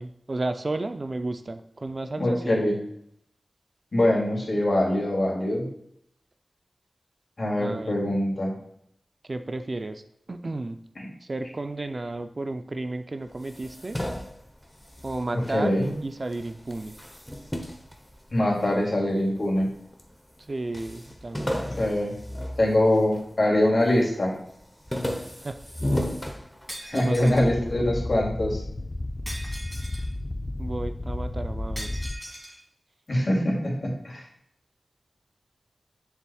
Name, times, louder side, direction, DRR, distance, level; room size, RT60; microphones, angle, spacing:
voice 1, 0.0-2.5 7.6-8.0 9.3-10.0 10.3-10.8 11.2-14.0 15.0-15.7 16.0-17.0 20.5-21.7 25.4-25.6 26.9-27.7 30.6-32.0, right 2 dB, 45° right, 8 dB, 0.5 m, -32 dB
voice 2, 2.2-2.8 3.9-5.6 7.4-8.5 11.0-11.1 15.3-15.9 18.3-19.7 21.8-22.2 22.6-24.3 26.9-28.6 33.1-34.2, left 1 dB, 55° left, -2 dB, 2.6 m, -23 dB
sound 1, 13.3-16.0 16.3-18.8 19.4-20.1 20.4-20.5 20.7-23.3 23.7-24.2 24.5-27.1, left 1 dB, 10° left, 0.9 m, -33 dB
Shatter, 26.7-27.5 29.3-30.1 31.8-32.6, right 1 dB, 15° right, 2.2 m, -40 dB
sound 2, 27.3-32.1, left 1 dB, 35° left, 0.6 m, -33 dB
7.2 x 7.0 x 2.3 m, 0.71 s
wide cardioid pair, 60°, 0 cm